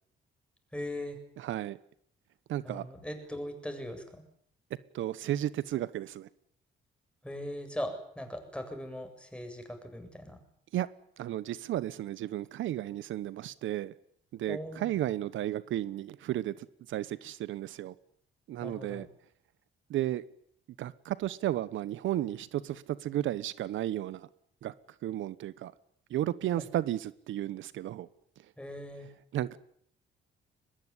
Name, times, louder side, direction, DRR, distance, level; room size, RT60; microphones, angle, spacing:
voice 1, 0.7-1.2 2.6-4.2 7.2-10.4 14.5-14.9 18.6-19.1 26.6-26.7 28.6-29.1, left 1 dB, 5° left, 8.0 m, -39 dB
voice 2, 1.4-1.8 2.5-2.9 4.9-6.3 10.7-10.9 11.2-13.9 14.3-17.9 18.5-19.1 19.9-20.2 20.8-24.3 24.6-24.7 25.0-25.7 26.1-28.1 29.3-29.6, right 13 dB, 80° right, 1.1 m, -33 dB
22.5 x 21.0 x 9.9 m
cardioid pair, 90°, 20 cm